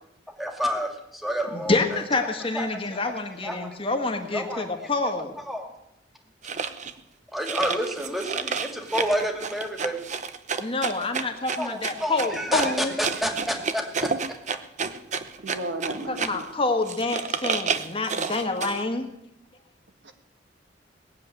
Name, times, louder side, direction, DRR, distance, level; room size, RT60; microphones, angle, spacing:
voice 1, 0.4-2.3 2.5-3.8 4.3-5.1 5.5-5.7 7.3-10.1 11.6-14.1, equal, ahead, 3 dB, 2.1 m, -30 dB
voice 2, 1.7-5.3 10.6-12.9 16.2-19.1, left 3 dB, 30° left, 4 dB, 1.5 m, -27 dB
sound 1, 6.4-6.9 7.4-16.5 16.9-18.8, right 5 dB, 40° right, 0.8 m, -30 dB
voice 3, 15.4-16.5 20.0-20.1, right 1 dB, 75° right, 6 dB, 1.8 m, -34 dB
19.0 x 7.5 x 9.0 m, 0.85 s
head